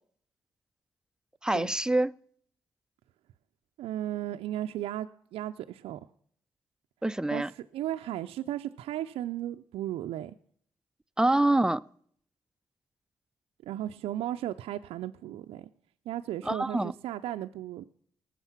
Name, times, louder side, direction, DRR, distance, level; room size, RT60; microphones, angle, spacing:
voice 1, 1.4-2.1 7.0-7.5 11.2-11.8 16.5-16.9, right 1 dB, 5° right, 0.6 m, -25 dB
voice 2, 3.8-6.1 7.3-10.4 13.6-15.7 16.1-17.8, right 12 dB, 80° right, 0.5 m, -35 dB
19.0 x 7.4 x 5.9 m
supercardioid pair, 45°, 10 cm